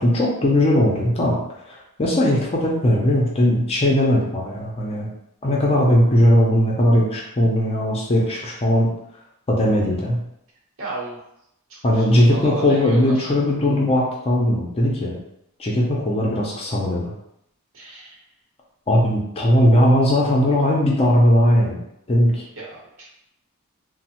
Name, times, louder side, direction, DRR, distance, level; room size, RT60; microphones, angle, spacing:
voice 1, 0.0-1.4 1.7-5.1 5.4-8.9 9.5-10.2 11.8-15.2 15.6-17.1 18.9-21.8 22.1-22.4, equal, 25° left, -3 dB, 0.5 m, -18 dB
voice 2, 10.8-11.2 11.7-13.3 17.7-18.2 22.6-23.0, right 2 dB, 60° right, -5 dB, 0.9 m, -34 dB
3.0 x 2.0 x 2.9 m, 0.79 s
head